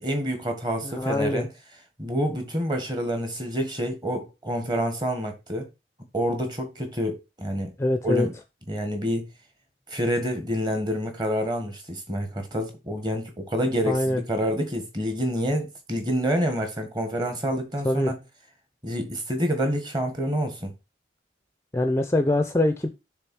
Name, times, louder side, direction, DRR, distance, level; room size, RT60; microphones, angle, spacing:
voice 1, 0.0-1.5 2.0-5.7 6.1-7.7 8.0-8.3 8.7-9.3 9.9-18.2 18.8-20.7, equal, 25° right, 1.5 m, -27 dB
voice 2, 0.8-1.5 7.8-8.3 13.9-14.2 17.8-18.1 21.7-22.9, left 1 dB, 15° left, 0.5 m, -23 dB
6.6 x 3.5 x 6.1 m
head